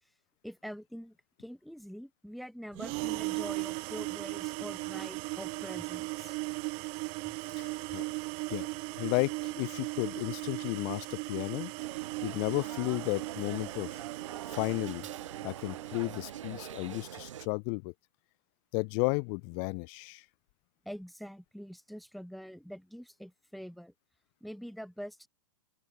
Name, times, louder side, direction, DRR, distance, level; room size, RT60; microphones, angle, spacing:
voice 1, 0.4-6.3 7.3-7.4 7.9-8.0 20.8-23.9 24.4-25.3, equal, ahead, 1.0 m, -45 dB
sound 1, 2.7-16.7, right 29 dB, 35° right, 0.4 m, -38 dB
voice 2, 7.5-8.0 8.5-8.7 9.0-11.7 12.2-14.0 14.5-15.1 15.4-17.9 18.7-20.2, left 40 dB or more, 40° left, 0.4 m, -33 dB
sound 2, 11.8-17.5, right 10 dB, 75° right, 1.5 m, -44 dB
open air
hypercardioid pair, 120°, 16 cm